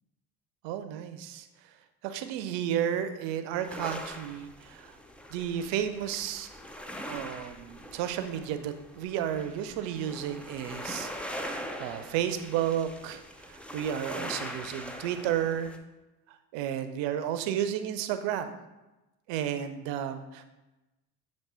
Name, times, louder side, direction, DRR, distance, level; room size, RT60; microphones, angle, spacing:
voice 1, 0.6-1.5 2.0-4.9 5.3-6.5 7.0-15.7 16.5-18.5 19.3-20.5, right 10 dB, 60° right, 10 dB, 0.6 m, -32 dB
sound 1, 3.5-15.8, equal, 5° left, 0.3 m, -42 dB
7.2 x 3.1 x 4.2 m, 1.0 s
hypercardioid pair, 60°, 49 cm